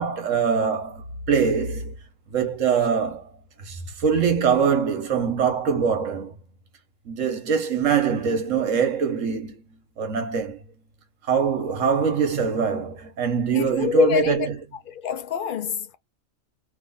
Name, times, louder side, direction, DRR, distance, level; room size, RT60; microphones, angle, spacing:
voice 1, 0.0-1.9 2.3-3.3 3.6-6.3 7.1-9.6 10.0-10.6 11.3-14.6, right 6 dB, 70° right, 1.4 m, -23 dB
voice 2, 13.5-14.5 14.9-16.0, left 8 dB, 55° left, 0.6 m, -25 dB
3.2 x 2.7 x 3.8 m
omnidirectional pair, 1.4 m